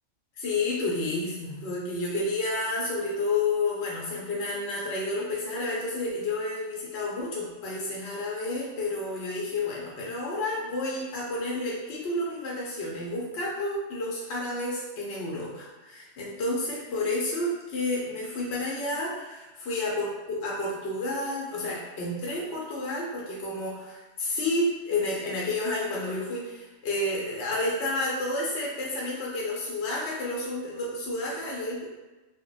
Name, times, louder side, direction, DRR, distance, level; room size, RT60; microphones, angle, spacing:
voice 1, 0.4-31.9, left 2 dB, 65° left, -4 dB, 0.9 m, -30 dB
2.2 x 2.2 x 3.8 m, 1.1 s
omnidirectional pair, 1.2 m